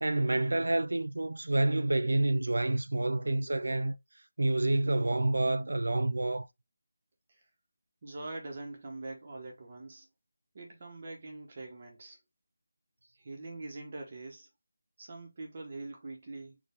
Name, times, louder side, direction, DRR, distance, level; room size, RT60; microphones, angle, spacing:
voice 1, 0.0-4.0 4.4-6.5, right 2 dB, 75° right, 0.4 m, -28 dB
voice 2, 8.0-10.1 10.5-12.2 13.2-14.5 15.0-16.6, right 2 dB, 35° right, 1.2 m, -43 dB
4.5 x 2.6 x 3.5 m
figure-of-eight pair, 170°, 0 cm